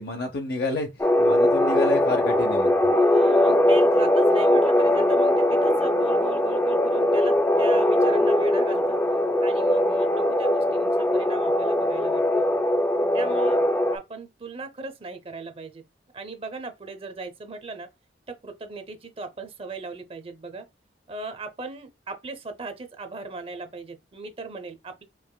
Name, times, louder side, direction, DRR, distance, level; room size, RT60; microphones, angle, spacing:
voice 1, 0.0-2.9, left 2 dB, 60° left, 0.6 m, -30 dB
sound 1, 1.0-14.0, left 1 dB, 15° left, 0.4 m, -21 dB
voice 2, 2.9-9.0 9.4-12.5 13.1-13.6 13.9-15.9 16.1-17.9 18.3-20.7 21.1-25.0, right 3 dB, 35° right, 0.6 m, -38 dB
4.9 x 2.9 x 2.2 m
head